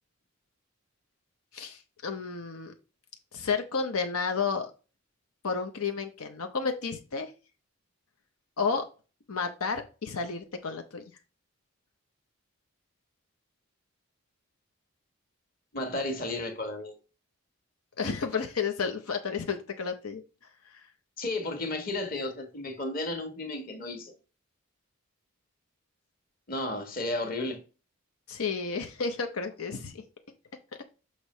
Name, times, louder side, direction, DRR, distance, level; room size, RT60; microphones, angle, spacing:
voice 1, 1.5-2.7 3.3-4.7 5.4-7.3 8.6-8.9 9.3-11.0 18.0-20.2 28.3-30.0, left 5 dB, 85° left, 0.7 m, -31 dB
voice 2, 15.7-16.9 21.2-24.1 26.5-27.6, left 2 dB, 40° left, 1.4 m, -33 dB
6.5 x 3.0 x 5.4 m
head